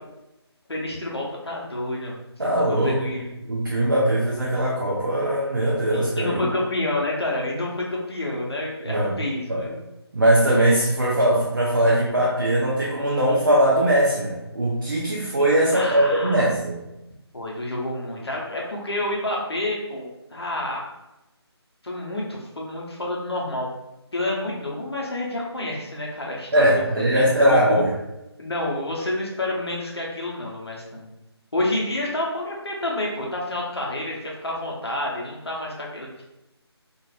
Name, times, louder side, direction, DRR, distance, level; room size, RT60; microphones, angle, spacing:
voice 1, 0.7-2.2 2.5-3.3 5.9-9.8 15.7-16.5 17.3-20.9 21.8-23.7 24.1-27.8 28.4-31.1 31.5-36.2, left 1 dB, 70° left, -3 dB, 1.0 m, -29 dB
voice 2, 2.4-3.0 3.5-6.4 8.9-9.2 9.5-9.7 10.1-16.8 26.5-27.9, right 1 dB, 50° right, -5 dB, 0.7 m, -20 dB
3.9 x 2.5 x 2.4 m, 0.93 s
figure-of-eight pair, 155°, 14 cm